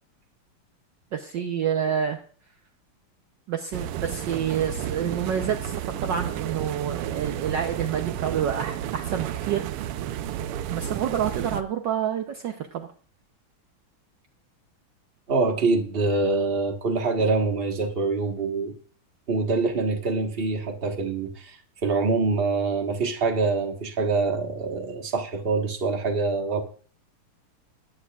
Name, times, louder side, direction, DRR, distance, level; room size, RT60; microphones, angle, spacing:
voice 1, 1.1-2.2 3.5-10.0 10.7-12.9, right 8 dB, 65° right, 5 dB, 1.3 m, -28 dB
sound 1, 3.7-11.6, right 11 dB, 85° right, 1.6 m, -31 dB
voice 2, 15.3-18.7 19.3-26.6, right 3 dB, 30° right, 3 dB, 1.4 m, -25 dB
19.5 x 9.5 x 2.4 m, 0.42 s
omnidirectional pair, 2.4 m